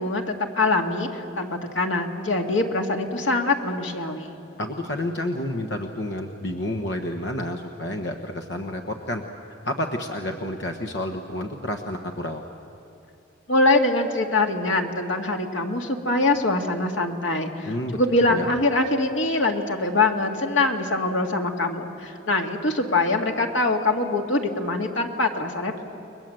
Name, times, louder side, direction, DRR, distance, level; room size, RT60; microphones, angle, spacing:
voice 1, 0.0-4.4 13.5-25.8, left 2 dB, 90° left, 3 dB, 2.1 m, -23 dB
voice 2, 4.6-9.2 9.6-12.4 17.7-18.0 18.3-18.5, left 1 dB, 65° left, 4 dB, 1.3 m, -30 dB
30.0 x 21.5 x 7.8 m, 2.8 s
head